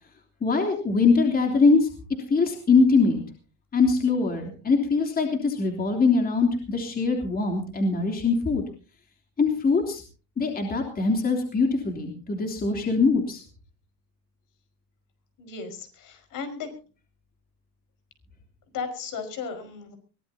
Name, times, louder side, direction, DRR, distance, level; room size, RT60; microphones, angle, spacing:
voice 1, 0.4-1.9 2.3-3.2 3.7-8.6 9.4-10.0 10.4-13.4, left 4 dB, 20° left, 3 dB, 3.2 m, -22 dB
voice 2, 15.4-16.7 18.7-20.0, left 5 dB, 45° left, 7 dB, 5.3 m, -35 dB
23.0 x 17.0 x 2.8 m, 0.37 s
supercardioid pair, 130°, 45 cm